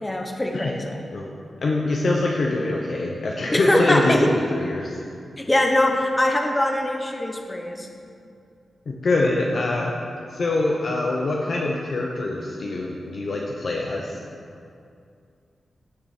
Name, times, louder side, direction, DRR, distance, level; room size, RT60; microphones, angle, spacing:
voice 1, 0.0-1.0 3.5-4.3 5.4-7.9, left 1 dB, 15° left, 3 dB, 0.8 m, -22 dB
voice 2, 1.6-5.0 8.9-9.9 10.3-14.2, left 2 dB, 50° left, -1 dB, 0.8 m, -24 dB
16.0 x 6.2 x 4.4 m, 2.4 s
wide cardioid pair, 165°, 0 cm